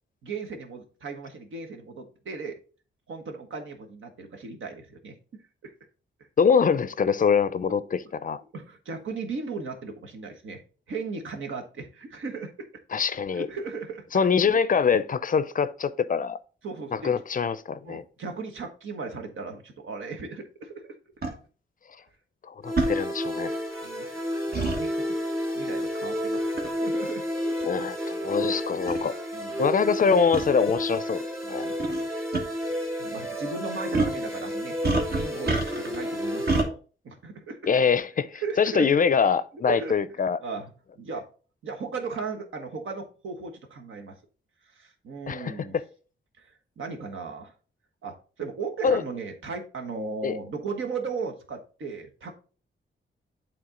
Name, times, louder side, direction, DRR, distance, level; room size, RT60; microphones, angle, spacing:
voice 1, 0.2-2.6 3.1-5.7 7.7-7.8 8.5-10.6 10.9-12.8 13.3-14.6 16.6-17.1 17.8-21.0 23.8-24.1 24.5-27.7 28.2-28.4 29.3-29.7 31.4-32.1 32.7-34.8 35.1-36.8 37.0-37.7 38.3-38.9 39.7-40.0 40.4-41.3 41.6-44.2 44.6-45.7 46.4-47.5 48.0-52.3, right 4 dB, 75° right, 1.3 m, -37 dB
voice 2, 6.4-8.4 12.9-13.5 14.1-16.4 16.9-18.0 22.5-23.5 24.6-24.7 27.7-29.1 29.6-31.2 31.5-31.7 37.7-40.4 45.3-45.8 48.8-49.0 50.2-50.3, left 6 dB, 40° left, 0.5 m, -24 dB
sound 1, 21.2-21.3 22.8-22.9 24.5-24.8 26.6-26.8 27.6-27.7 28.5-28.6 28.9-29.0 30.3-30.5 31.8-32.0 32.3-32.4 33.9-34.2 34.8-36.0 36.5-36.7, right 3 dB, 50° right, 1.5 m, -26 dB
sound 2, 22.6-36.6, equal, 15° right, 2.6 m, -31 dB
8.7 x 3.5 x 3.7 m
cardioid pair, 70°, 20 cm